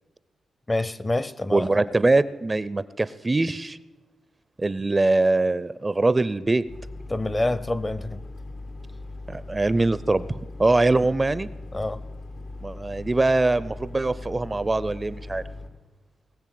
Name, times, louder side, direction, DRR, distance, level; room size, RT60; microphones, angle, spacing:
voice 1, 0.7-1.8 7.1-8.2 11.7-12.0, left 2 dB, 25° left, 0.6 m, -27 dB
voice 2, 1.5-3.8 4.6-6.6 9.3-11.5 12.6-15.4, right 2 dB, 25° right, 0.4 m, -23 dB
sound 1, 6.7-15.7, left 2 dB, 85° left, 1.8 m, -39 dB
19.5 x 7.1 x 7.6 m
cardioid pair, 70°, 0 cm